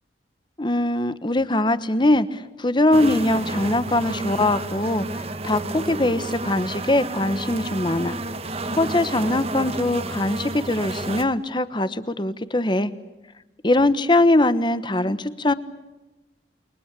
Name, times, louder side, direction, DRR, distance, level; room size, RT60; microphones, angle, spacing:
voice 1, 0.6-8.2 8.7-12.9 13.6-15.5, left 1 dB, 25° left, 14 dB, 1.2 m, -22 dB
sound 1, 2.9-11.2, right 2 dB, 35° right, 1.3 m, -31 dB
29.0 x 23.0 x 8.4 m, 1.1 s
head